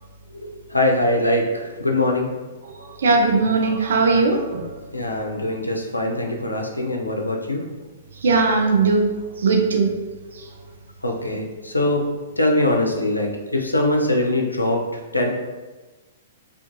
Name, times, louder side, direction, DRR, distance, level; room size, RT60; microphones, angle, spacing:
voice 1, 0.3-2.3 4.9-7.6 11.0-12.0 12.4-15.3, left 1 dB, 85° left, 1 dB, 0.4 m, -22 dB
voice 2, 3.0-4.6 8.2-9.1 9.4-9.9, right 4 dB, 65° right, 2 dB, 0.4 m, -18 dB
2.4 x 2.4 x 2.6 m, 1.2 s
figure-of-eight pair, 110°, 0 cm